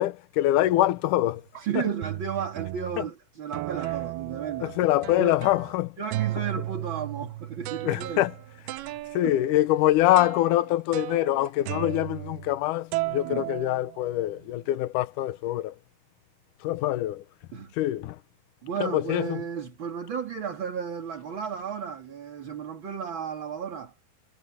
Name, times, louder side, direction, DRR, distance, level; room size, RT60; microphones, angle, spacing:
voice 1, 0.0-1.4 1.8-1.9 3.0-3.1 4.6-6.0 7.8-8.3 8.7-8.8 9.1-15.8 16.6-17.2 17.7-18.2 18.8-19.4, left 14 dB, 80° left, 1.8 m, -24 dB
sound 1, 0.6-0.9 1.6-1.7 2.0-3.1 3.5-5.8 6.1-12.6 12.9-14.3, right 16 dB, 75° right, 2.5 m, -35 dB
voice 2, 1.6-4.9 5.2-5.4 6.0-8.2 9.2-9.3 13.2-13.5 17.5-17.7 18.6-24.0, right 7 dB, 40° right, 2.2 m, -33 dB
omnidirectional pair, 4.7 m